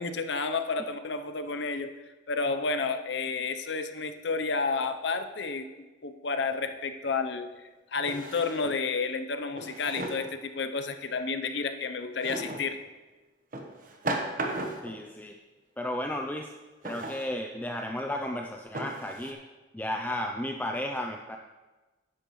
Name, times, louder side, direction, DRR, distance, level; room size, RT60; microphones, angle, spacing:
voice 1, 0.0-1.9 2.3-5.7 6.0-7.5 7.9-12.8, left 4 dB, 65° left, 8 dB, 0.7 m, -31 dB
Drawer open or close, 6.7-6.8 8.0-8.9 9.6-10.3 12.2-12.7 13.5-15.0 16.8-17.3 18.0-18.1 18.7-19.3, right 2 dB, 45° right, 1.1 m, -35 dB
voice 2, 14.8-15.4 15.8-16.5 16.8-19.4 19.7-21.4, left 1 dB, 10° left, 2 dB, 0.4 m, -33 dB
12.0 x 10.0 x 3.1 m, 1.2 s
head